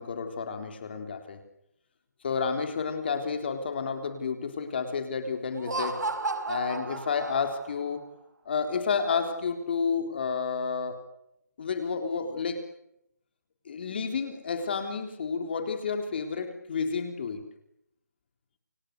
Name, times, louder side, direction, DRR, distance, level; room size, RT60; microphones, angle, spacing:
voice 1, 0.0-1.4 2.2-6.0 6.5-8.0 8.5-11.0 11.6-12.6 13.7-17.4, left 5 dB, 35° left, 7 dB, 3.7 m, -30 dB
Laughter, 5.5-7.8, right 3 dB, 80° right, 5.2 m, -33 dB
29.5 x 27.0 x 6.6 m, 0.78 s
hypercardioid pair, 170°, 9 cm